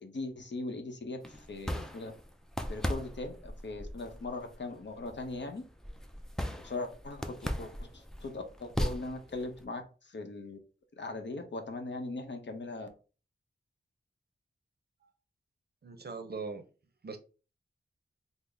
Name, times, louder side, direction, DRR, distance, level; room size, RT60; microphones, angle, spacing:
voice 1, 0.0-2.1 2.7-5.6 6.6-10.6 11.0-12.9, left 2 dB, 65° left, 4 dB, 0.7 m, -40 dB
sound 1, 1.2-9.7, equal, 5° left, 0.4 m, -38 dB
voice 2, 15.8-16.7 17.0-17.2, right 4 dB, 50° right, 7 dB, 0.6 m, -40 dB
3.8 x 2.0 x 3.3 m, 0.35 s
wide cardioid pair, 90°, 20 cm